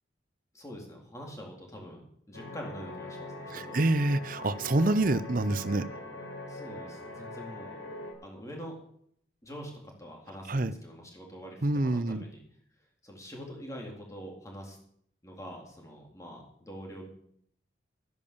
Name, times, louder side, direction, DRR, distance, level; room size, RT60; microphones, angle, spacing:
voice 1, 0.5-3.8 6.5-7.8 8.2-8.9 9.4-9.7 10.0-12.4 13.0-14.8 15.2-17.1, equal, 15° left, 0 dB, 3.7 m, -44 dB
sound 1, 2.3-8.1, left 2 dB, 75° left, 5.1 m, -42 dB
voice 2, 3.5-5.9 10.5-10.7 11.6-12.2, right 2 dB, 45° right, 15 dB, 0.7 m, -27 dB
13.0 x 10.5 x 6.9 m, 0.66 s
head